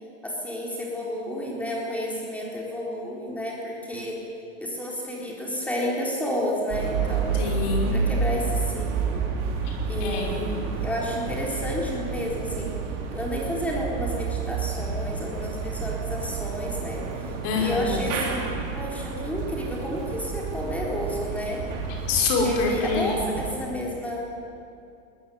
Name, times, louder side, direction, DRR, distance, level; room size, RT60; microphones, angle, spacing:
voice 1, 0.2-4.2 4.6-7.4 7.9-9.2 9.9-12.7 13.1-17.1 17.6-21.7 22.4-24.2, left 1 dB, 5° left, -3 dB, 4.1 m, -31 dB
sound 1, 6.7-23.5, right 5 dB, 35° right, 4.5 m, -30 dB
voice 2, 7.3-8.0 9.6-9.8 10.0-10.4 17.4-18.1 21.9-23.3, left 4 dB, 40° left, 0 dB, 5.3 m, -26 dB
21.5 x 18.5 x 9.4 m, 2.6 s
supercardioid pair, 170°, 41 cm